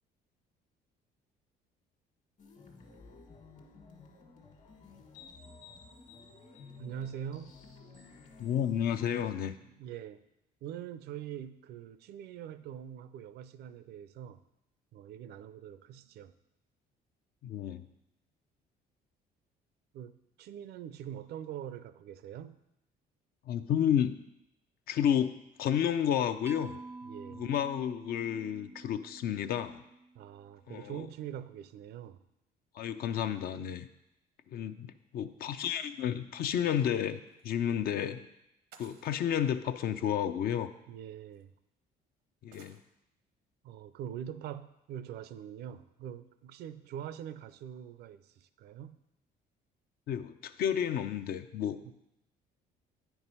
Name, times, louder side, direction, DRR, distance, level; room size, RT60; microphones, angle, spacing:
sound 1, 2.4-9.4, left 4 dB, 50° left, 1.5 m, -53 dB
voice 1, 6.8-7.6 9.6-10.2 10.6-14.4 14.9-16.3 19.9-22.6 27.0-27.4 30.1-32.2 40.9-41.5 43.6-49.0 51.8-51.9, right 10 dB, 75° right, 13 dB, 0.5 m, -44 dB
voice 2, 8.4-9.5 17.4-17.8 23.5-24.2 24.9-25.3 25.6-26.7 27.3-29.8 30.7-31.1 32.7-33.9 34.5-38.3 38.8-40.7 42.4-42.8 50.1-51.8, left 9 dB, 65° left, 10 dB, 0.6 m, -31 dB
Mallet percussion, 26.5-30.5, right 3 dB, 15° right, 0.3 m, -48 dB
sound 2, 37.3-37.5 38.7-39.3 40.5-40.6 41.3-41.4 42.5-42.8, right 7 dB, 90° right, 0.9 m, -58 dB
9.0 x 4.7 x 5.5 m, 0.87 s
cardioid pair, 110°, 17 cm